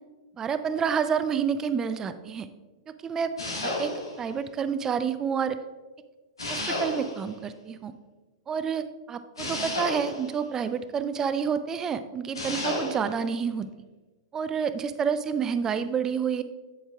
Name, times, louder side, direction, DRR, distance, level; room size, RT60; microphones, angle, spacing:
voice 1, 0.4-2.5 2.9-3.3 3.6-5.6 6.5-7.9 8.5-13.7 14.3-16.4, right 7 dB, 20° right, 11 dB, 0.5 m, -29 dB
sound 1, 3.4-4.3 6.4-7.3 9.4-10.4 12.3-13.1, left 2 dB, 85° left, 1.7 m, -32 dB
8.6 x 7.9 x 2.4 m, 1.2 s
figure-of-eight pair, 105°, 2 cm